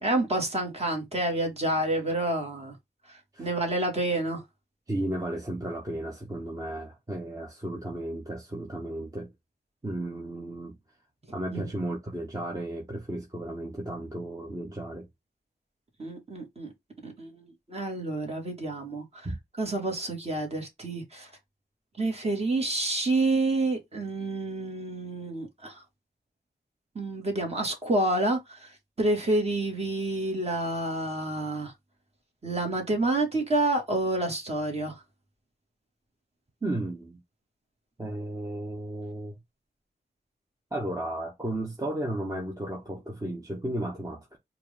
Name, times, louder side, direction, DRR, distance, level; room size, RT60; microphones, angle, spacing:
voice 1, 0.0-2.8 3.1-4.4 11.5-11.7 16.0-16.7 17.0-19.3 19.6-21.3 22.0-25.8 27.0-31.7 32.4-35.0, right 2 dB, 35° right, 1.9 m, -29 dB
voice 2, 4.9-9.3 9.8-10.7 11.3-15.1 19.2-19.4 36.6-37.2 38.0-39.4 40.7-44.4, right 1 dB, 20° right, 1.0 m, -34 dB
4.5 x 2.5 x 3.5 m
wide cardioid pair, 105°, 18 cm